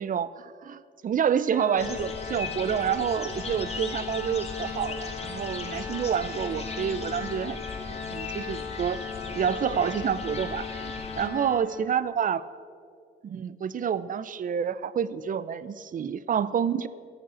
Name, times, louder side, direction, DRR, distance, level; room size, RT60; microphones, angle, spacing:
voice 1, 0.0-7.6 7.9-9.0 9.3-12.5 13.2-16.9, right 8 dB, 45° right, 17 dB, 0.6 m, -28 dB
Organ, 1.5-12.2, left 6 dB, 60° left, 1.9 m, -38 dB
sound 1, 1.8-11.3, left 3 dB, 30° left, 1.7 m, -39 dB
13.5 x 8.5 x 6.9 m, 2.2 s
cardioid pair, 90°, 20 cm